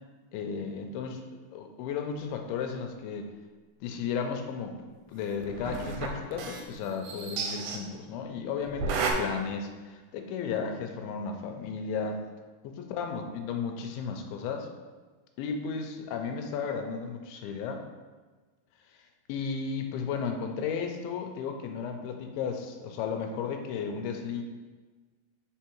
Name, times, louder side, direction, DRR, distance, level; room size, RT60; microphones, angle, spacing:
voice 1, 0.3-1.2 1.5-3.3 3.8-12.2 12.7-14.7 15.4-17.8 19.3-24.4, left 6 dB, 90° left, 4 dB, 2.5 m, -34 dB
sound 1, 5.4-6.7 7.0-7.8 8.7-9.1, right 5 dB, 90° right, 2.6 m, -32 dB
5.2 x 4.6 x 4.4 m, 1.3 s
omnidirectional pair, 4.4 m